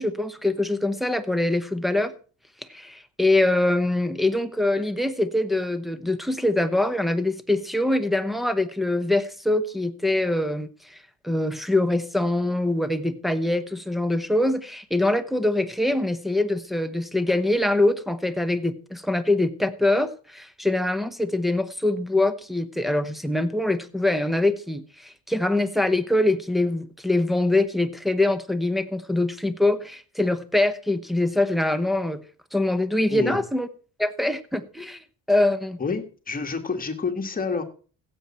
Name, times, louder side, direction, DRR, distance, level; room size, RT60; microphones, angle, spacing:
voice 1, 0.0-2.1 2.7-11.0 11.2-32.2 32.5-33.7 34.0-35.8, left 2 dB, ahead, 8 dB, 1.0 m, -24 dB
voice 2, 33.1-33.4 35.8-37.6, left 4 dB, 25° left, 5 dB, 1.9 m, -28 dB
16.0 x 7.6 x 4.4 m, 0.38 s
cardioid pair, 115°, 33 cm